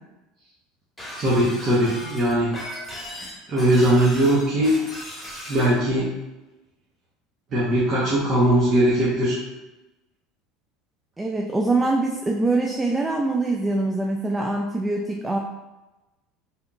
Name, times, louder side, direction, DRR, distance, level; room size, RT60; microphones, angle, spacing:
Shatter, 1.0-5.7, equal, 15° left, 1.2 m, -37 dB
voice 1, 1.2-2.5 3.5-4.7 5.5-6.1 7.5-9.4, right 1 dB, 40° right, -8 dB, 0.9 m, -20 dB
voice 2, 11.2-15.4, right 2 dB, 15° right, 1 dB, 0.4 m, -24 dB
3.5 x 2.8 x 2.3 m, 1.0 s
hypercardioid pair, 85°, 0 cm